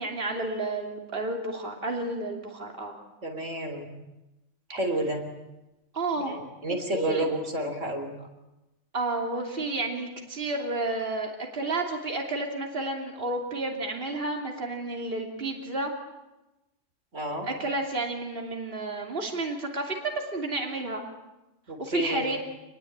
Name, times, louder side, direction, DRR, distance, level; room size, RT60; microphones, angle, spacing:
voice 1, 0.0-2.9 5.9-6.4 6.7-7.3 8.9-15.9 17.4-21.0 21.8-22.4, right 2 dB, 45° right, 1 dB, 3.2 m, -31 dB
voice 2, 3.2-3.9 4.7-5.2 6.2-8.1 17.1-17.5 21.7-22.2, right 1 dB, 75° right, 4 dB, 3.9 m, -30 dB
27.5 x 20.5 x 8.8 m, 0.99 s
omnidirectional pair, 1.3 m